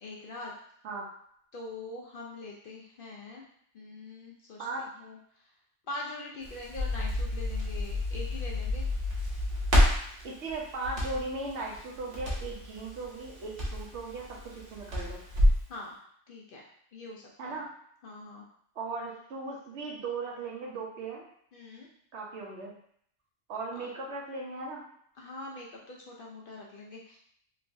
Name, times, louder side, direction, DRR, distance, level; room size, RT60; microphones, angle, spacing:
voice 1, 0.0-0.5 1.5-3.4 3.7-4.7 5.0-5.2 5.9-8.9 15.7-16.6 16.9-17.6 18.0-18.5 21.5-21.9 23.8-23.9 25.2-27.2, left 2 dB, 60° left, -2 dB, 0.6 m, -43 dB
Crackle, 6.4-15.7, left 1 dB, 50° right, 1.1 m, -29 dB
voice 2, 10.2-15.2 17.4-17.7 18.8-21.2 22.1-22.7 23.5-24.8, right 3 dB, 70° right, -1 dB, 1.0 m, -37 dB
3.1 x 3.1 x 2.6 m, 0.65 s
omnidirectional pair, 1.2 m